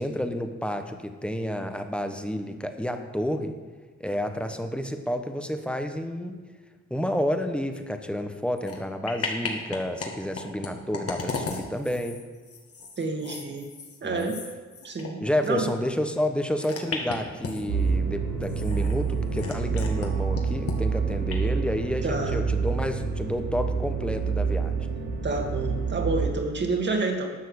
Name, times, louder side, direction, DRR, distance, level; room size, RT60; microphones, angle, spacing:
voice 1, 0.0-3.5 4.0-6.4 6.9-12.2 14.0-14.3 15.2-24.8, equal, 5° left, 6 dB, 1.0 m, -30 dB
sound 1, 8.6-8.8 9.1-10.1 10.3-15.3 15.6-15.7 16.6-17.9 18.4-20.1 20.3-20.8 21.3-21.4, left 4 dB, 50° left, 1.9 m, -35 dB
voice 2, 13.0-13.7 14.0-14.4 14.8-15.7 22.0-22.4 25.2-27.3, right 3 dB, 35° right, 2 dB, 2.0 m, -29 dB
sound 2, 17.7-26.3, right 5 dB, 75° right, 1.9 m, -27 dB
11.5 x 6.5 x 6.5 m, 1.4 s
cardioid pair, 90°, 30 cm